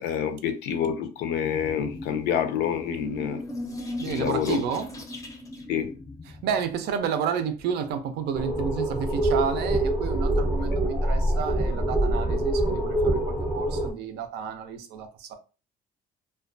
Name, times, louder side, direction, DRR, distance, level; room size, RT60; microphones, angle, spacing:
voice 1, 0.0-3.4 4.1-4.6 5.7-5.9, left 8 dB, 80° left, 0.5 m, -27 dB
sound 1, 1.4-6.7, left 1 dB, 20° left, 0.5 m, -38 dB
voice 2, 3.9-4.9 6.3-15.3, right 7 dB, 80° right, 0.5 m, -31 dB
sound 2, 8.3-13.9, right 1 dB, 25° right, 0.6 m, -25 dB
2.2 x 2.2 x 2.5 m
cardioid pair, 110°, 17 cm